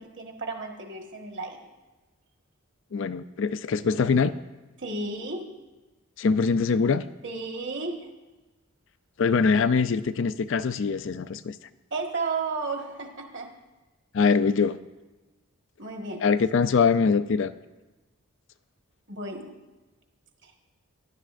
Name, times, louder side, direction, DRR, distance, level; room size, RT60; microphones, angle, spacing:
voice 1, 0.0-1.6 4.8-5.5 7.2-8.1 11.9-13.5 15.8-16.2 19.1-19.5 20.4-20.5, right 3 dB, 55° right, 2 dB, 1.5 m, -33 dB
voice 2, 2.9-4.3 6.2-7.0 9.2-11.5 14.1-14.8 16.2-17.5, left 5 dB, 60° left, 14 dB, 0.4 m, -23 dB
16.0 x 11.5 x 2.5 m, 1.2 s
head